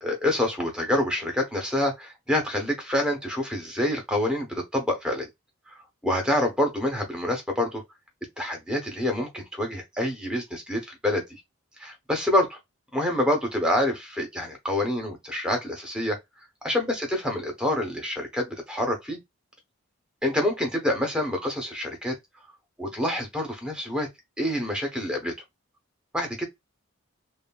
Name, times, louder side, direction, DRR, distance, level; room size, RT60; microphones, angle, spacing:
voice 1, 0.0-5.3 5.7-5.8 6.0-7.8 8.4-11.4 11.8-12.6 12.9-16.2 16.6-19.2 20.2-22.1 22.8-24.1 24.4-25.3 26.1-26.4, left 1 dB, 5° right, 0.7 m, -27 dB
3.1 x 2.2 x 2.2 m
head